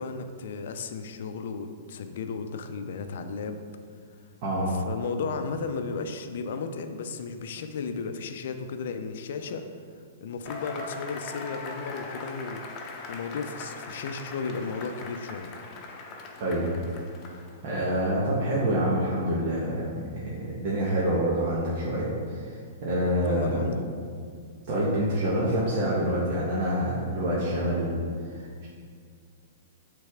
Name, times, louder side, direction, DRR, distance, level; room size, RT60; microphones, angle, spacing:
voice 1, 0.0-3.6 4.9-9.7 10.2-12.6 13.1-15.5 23.2-24.0, left 5 dB, 65° left, 8 dB, 0.5 m, -34 dB
voice 2, 4.4-4.8 16.4-16.7 17.6-23.6 24.7-27.9 28.3-28.7, right 1 dB, 45° right, -7 dB, 1.2 m, -27 dB
Cheering / Applause / Crowd, 10.5-17.7, left 3 dB, 35° left, 0.8 m, -40 dB
8.0 x 3.3 x 3.6 m, 2.2 s
hypercardioid pair, 115°, 0 cm